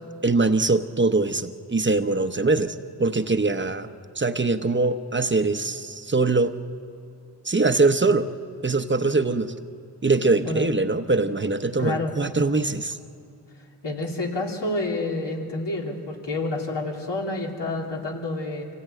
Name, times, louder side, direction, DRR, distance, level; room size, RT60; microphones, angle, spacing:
voice 1, 0.2-3.9 4.2-6.5 7.5-8.3 8.6-9.5 10.0-13.0, right 3 dB, 25° right, 9 dB, 0.9 m, -22 dB
voice 2, 11.8-12.1 13.8-18.7, left 2 dB, 85° left, -1 dB, 3.3 m, -28 dB
25.5 x 17.0 x 9.2 m, 2.4 s
wide cardioid pair, 90°, 41 cm